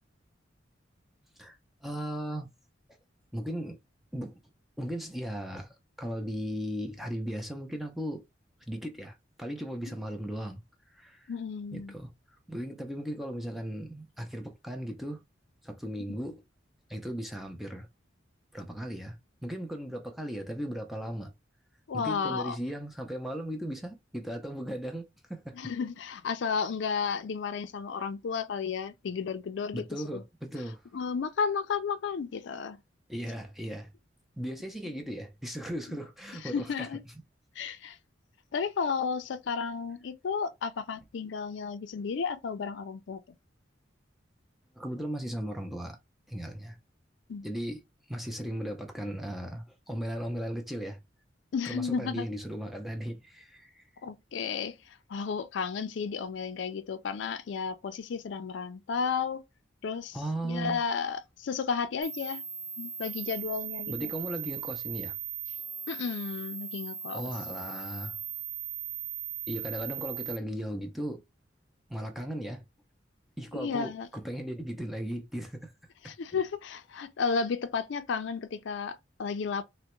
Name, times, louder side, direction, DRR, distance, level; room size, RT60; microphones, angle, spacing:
voice 1, 1.8-2.5 3.3-3.8 4.1-4.4 4.8-8.2 8.7-10.6 10.9-11.3 11.7-12.1 12.5-15.2 15.6-16.4 16.9-17.9 18.5-21.3 21.9-25.6 29.7-30.8 33.1-33.9 34.4-36.9 44.8-46.0 46.3-46.8 47.4-47.8 48.1-51.0 51.6-53.8 60.1-60.8 63.9-65.2 67.1-68.2 69.5-71.2 71.9-72.7 73.4-75.7 76.0-76.1, equal, ahead, 0.4 m, -37 dB
voice 2, 11.3-11.9 21.9-22.6 25.5-30.2 30.9-32.8 36.4-37.0 37.6-38.0 38.5-43.2 47.3-47.5 51.5-52.3 54.0-59.4 59.8-60.2 60.4-62.4 62.8-64.1 65.9-67.2 73.5-74.1 76.0-79.6, left 5 dB, 70° left, 0.4 m, -33 dB
sound 1, 62.0-70.4, right 7 dB, 50° right, 0.9 m, -38 dB
3.3 x 2.1 x 2.9 m
head